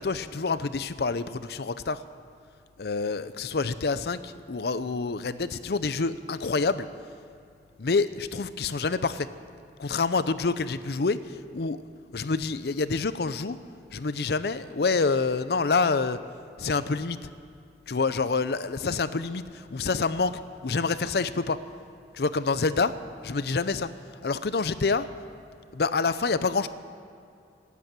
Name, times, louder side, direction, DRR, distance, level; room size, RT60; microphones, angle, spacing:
voice 1, 0.0-2.0 2.8-6.9 7.8-9.3 9.8-11.8 12.1-13.6 13.9-16.2 16.6-17.3 17.9-21.6 22.1-22.9 23.2-23.9 24.2-25.1 25.7-26.7, left 4 dB, 60° left, 14 dB, 0.6 m, -27 dB
17.5 x 8.3 x 8.9 m, 2.4 s
head